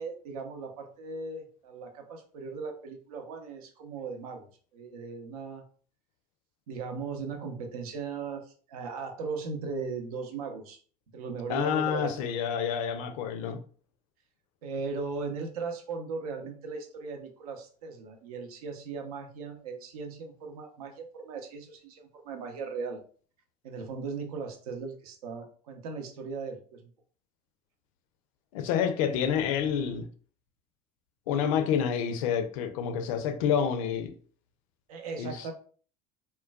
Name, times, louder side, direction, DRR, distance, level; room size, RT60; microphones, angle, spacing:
voice 1, 0.0-4.5 4.7-5.6 6.7-10.8 11.1-12.1 14.6-23.0 23.6-26.8 34.9-35.5, right 4 dB, 65° right, 0.6 m, -38 dB
voice 2, 11.5-13.6 28.5-30.0 31.3-34.1 35.2-35.4, left 8 dB, 55° left, 0.5 m, -28 dB
3.7 x 2.2 x 2.2 m
figure-of-eight pair, 65°, 21 cm